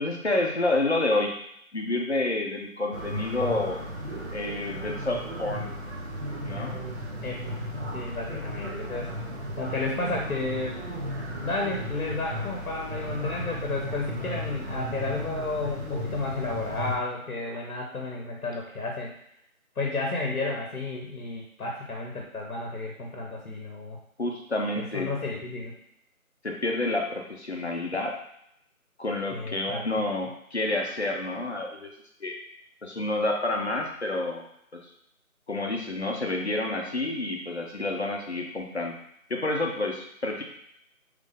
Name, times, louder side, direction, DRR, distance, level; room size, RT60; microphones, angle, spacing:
voice 1, 0.0-1.3 1.7-3.8 4.3-5.7 6.4-6.9 24.2-25.1 26.4-28.1 29.0-31.9 32.2-32.4 32.8-34.5 34.7-34.8 35.5-39.0 39.3-40.4, left 2 dB, 50° left, 0 dB, 0.6 m, -29 dB
sound 1, 2.9-17.0, equal, 50° right, 0.7 m, -35 dB
voice 2, 7.2-7.5 7.9-9.1 9.6-10.8 11.4-19.1 19.8-24.0 24.7-25.7 29.3-29.9, left 3 dB, 75° left, 0 dB, 0.9 m, -32 dB
3.2 x 2.6 x 3.4 m, 0.74 s
figure-of-eight pair, 175°, 43 cm